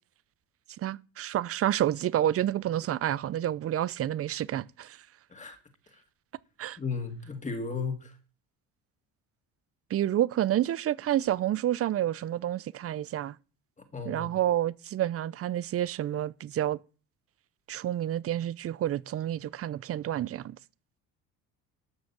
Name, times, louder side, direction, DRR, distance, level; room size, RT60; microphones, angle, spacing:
voice 1, 0.8-5.0 6.6-6.8 9.9-13.4 14.1-16.8 17.7-20.6, right 12 dB, 40° right, 0.6 m, -29 dB
voice 2, 6.8-8.2 13.9-14.3, left 4 dB, 20° left, 2.5 m, -35 dB
13.0 x 6.3 x 7.3 m
cardioid pair, 120°, 35 cm